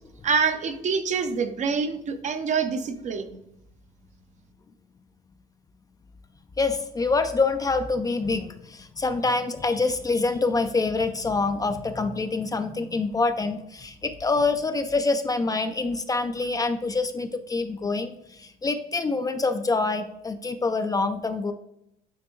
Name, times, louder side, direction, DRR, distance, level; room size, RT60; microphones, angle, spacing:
voice 1, 0.2-3.4, right 5 dB, 45° right, 8 dB, 0.7 m, -26 dB
voice 2, 6.6-21.5, left 3 dB, 20° left, 8 dB, 0.4 m, -26 dB
9.3 x 3.4 x 3.0 m, 0.80 s
cardioid pair, 110°, 17 cm